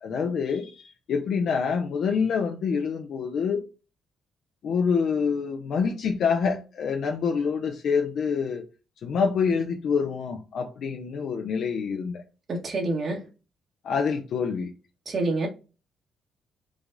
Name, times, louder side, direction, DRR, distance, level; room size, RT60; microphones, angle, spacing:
voice 1, 0.0-3.6 4.6-8.6 9.0-12.2 13.8-14.7, left 6 dB, 65° left, 0.7 m, -26 dB
voice 2, 12.5-13.2 15.1-15.5, right 2 dB, 45° right, 1.6 m, -27 dB
5.0 x 2.4 x 3.9 m
cardioid pair, 90°, 0 cm